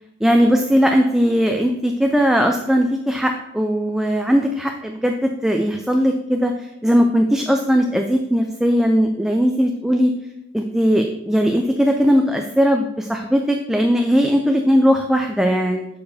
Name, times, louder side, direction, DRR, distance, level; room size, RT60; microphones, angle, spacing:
voice 1, 0.2-10.1 10.5-15.9, equal, 5° right, 3 dB, 0.3 m, -18 dB
7.0 x 6.6 x 2.6 m, 0.88 s
head